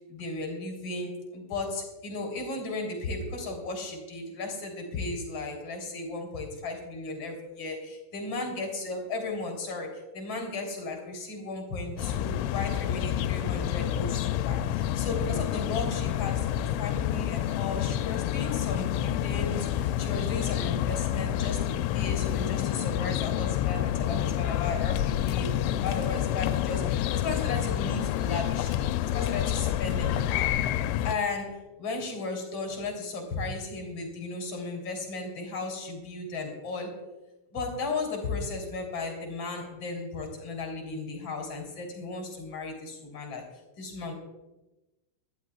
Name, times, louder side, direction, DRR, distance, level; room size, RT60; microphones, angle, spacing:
voice 1, 0.1-30.6 31.0-37.0 37.5-43.5 43.8-44.1, left 3 dB, 35° left, 2 dB, 4.1 m, -35 dB
sound 1, 12.0-31.2, left 12 dB, 90° left, 3.0 m, -28 dB
23.0 x 14.0 x 2.4 m, 1.0 s
omnidirectional pair, 5.3 m